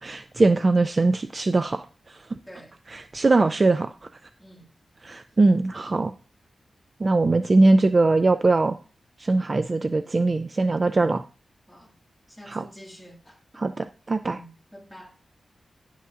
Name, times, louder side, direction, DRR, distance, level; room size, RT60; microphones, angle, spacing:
voice 1, 0.0-2.3 2.9-3.9 5.0-6.1 7.0-8.8 9.2-11.2 12.5-12.6 13.6-14.4, right 3 dB, 30° right, 0.3 m, -21 dB
voice 2, 12.3-13.4 14.3-15.1, equal, ahead, 1.9 m, -47 dB
10.5 x 8.3 x 2.4 m
wide cardioid pair, 165°, 0 cm